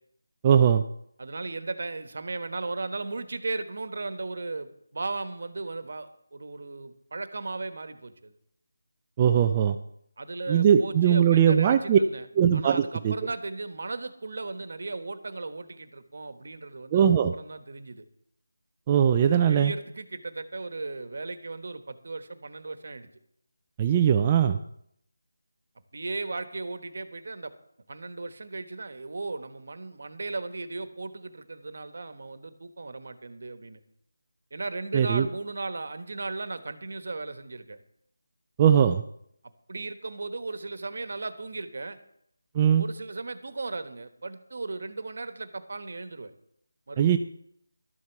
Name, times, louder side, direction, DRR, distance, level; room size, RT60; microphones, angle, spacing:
voice 1, 0.4-0.8 9.2-9.8 10.5-12.0 12.4-13.1 16.9-17.3 18.9-19.7 23.8-24.6 34.9-35.3 38.6-39.0 42.6-42.8 47.0-47.2, right 9 dB, 15° right, 7 dB, 0.4 m, -20 dB
voice 2, 1.2-8.4 10.2-12.3 12.5-18.0 19.2-23.1 25.9-27.5 27.9-33.8 34.5-37.8 39.7-42.0 42.8-46.3 46.9-47.2, right 3 dB, 50° right, 11 dB, 1.2 m, -36 dB
12.0 x 7.9 x 7.2 m, 0.71 s
figure-of-eight pair, 175°, 0 cm